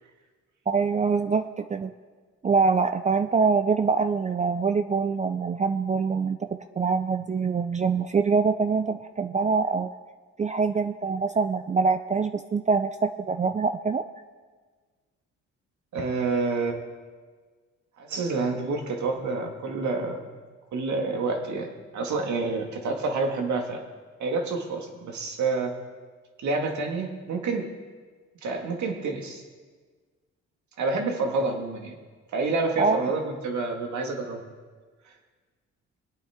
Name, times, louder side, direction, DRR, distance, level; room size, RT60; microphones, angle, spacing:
voice 1, 0.7-1.9 2.4-6.4 6.8-9.9 10.4-14.0 32.8-33.0, right 5 dB, 25° right, 8 dB, 0.4 m, -24 dB
voice 2, 15.9-16.8 18.0-20.4 20.7-21.7 21.9-23.8 24.2-25.7 26.4-27.7 28.4-29.4 30.8-31.9 32.3-34.4, right 3 dB, 70° right, 3 dB, 2.0 m, -28 dB
22.0 x 8.7 x 3.7 m, 1.5 s
cardioid pair, 90°, 30 cm